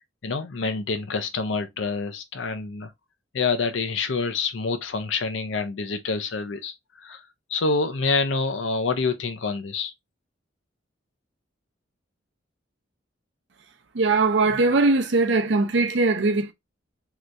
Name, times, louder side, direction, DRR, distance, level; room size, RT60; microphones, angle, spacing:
voice 1, 0.2-2.9 3.3-7.2 7.5-9.9, left 4 dB, 70° left, 0.6 m, -27 dB
voice 2, 13.9-16.5, right 3 dB, 60° right, 0.6 m, -20 dB
3.3 x 2.9 x 2.5 m
head